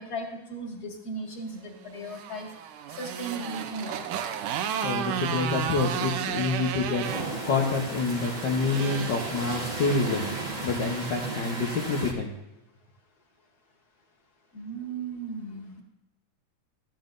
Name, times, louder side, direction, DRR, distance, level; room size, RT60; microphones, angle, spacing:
voice 1, 0.0-2.5 3.0-4.0 14.5-15.8, right 2 dB, 35° left, 0 dB, 2.1 m, -36 dB
Motorcycle, 1.8-11.2, right 9 dB, 85° right, 2.3 m, -34 dB
voice 2, 4.8-10.2 10.6-12.3, left 4 dB, 80° left, 0 dB, 1.0 m, -27 dB
sound 1, 7.0-12.1, right 2 dB, 50° right, 0.5 m, -34 dB
14.5 x 11.0 x 2.6 m, 0.94 s
omnidirectional pair, 3.5 m